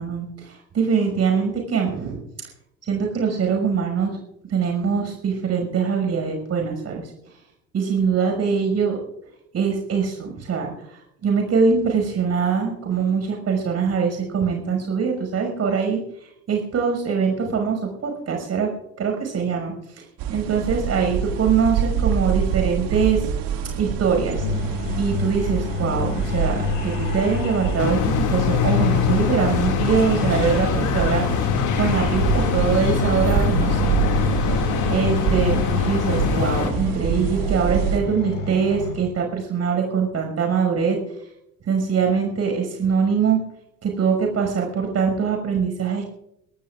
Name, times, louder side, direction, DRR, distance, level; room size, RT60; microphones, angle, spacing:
voice 1, 0.0-2.2 2.8-4.2 4.5-7.0 7.7-9.0 9.5-16.0 16.5-18.7 19.0-19.7 20.3-23.2 23.8-24.4 25.0-26.6 26.8-31.3 31.7-34.1 34.4-34.6 34.9-41.0 41.7-43.4 43.8-46.0, right 6 dB, 35° right, 2 dB, 6.0 m, -23 dB
sound 1, 20.2-38.0, right 7 dB, 55° right, 2.3 m, -27 dB
sound 2, 24.3-38.9, left 4 dB, 65° left, 6.1 m, -29 dB
sound 3, 27.8-36.7, left 7 dB, 45° left, 2.4 m, -23 dB
24.5 x 18.0 x 2.5 m, 0.81 s
figure-of-eight pair, 65°, 41 cm